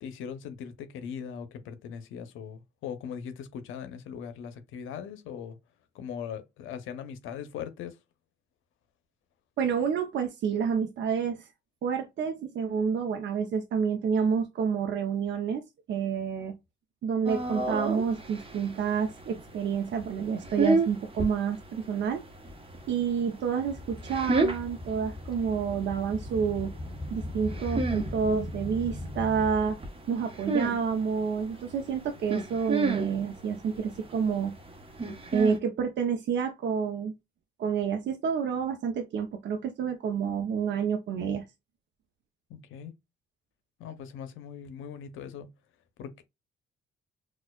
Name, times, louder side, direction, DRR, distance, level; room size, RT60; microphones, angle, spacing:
voice 1, 0.0-5.6 5.9-8.0 42.5-42.9 43.8-45.5 46.0-46.2, left 7 dB, 85° left, 0.6 m, -40 dB
voice 2, 9.6-11.5 11.8-15.6 15.9-16.5 17.0-22.2 22.9-26.7 27.1-29.8 30.1-34.6 35.3-37.1 37.6-41.4, right 6 dB, 65° right, 0.7 m, -29 dB
sound 1, 17.2-35.6, right 3 dB, 30° right, 1.0 m, -33 dB
sound 2, 23.6-29.9 30.4-30.6 31.5-31.6 32.4-32.5, left 1 dB, 20° left, 0.9 m, -38 dB
4.2 x 2.4 x 2.3 m
cardioid pair, 90°, 20 cm